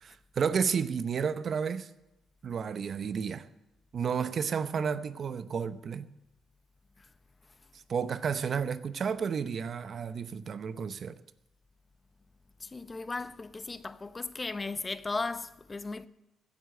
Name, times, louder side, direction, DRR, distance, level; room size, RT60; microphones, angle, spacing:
voice 1, 0.0-1.9 2.4-3.5 3.9-6.1 7.9-11.2, right 6 dB, 50° right, 0.7 m, -31 dB
voice 2, 12.6-16.1, left 3 dB, 25° left, 0.7 m, -36 dB
16.0 x 7.9 x 6.6 m
cardioid pair, 90°, 0 cm